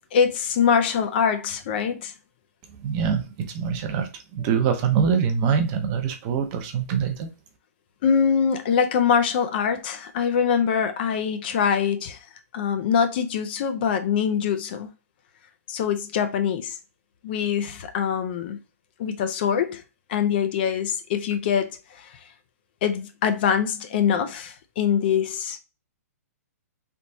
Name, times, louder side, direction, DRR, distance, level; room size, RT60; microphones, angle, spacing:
voice 1, 0.1-2.1 8.0-12.3 12.5-14.9 15.7-16.8 17.2-18.6 19.0-19.8 20.1-22.3 22.8-25.6, left 7 dB, 40° left, 0.4 m, -24 dB
voice 2, 2.8-7.3, right 7 dB, 25° right, 0.6 m, -24 dB
3.4 x 3.0 x 2.6 m
hypercardioid pair, 160°, 9 cm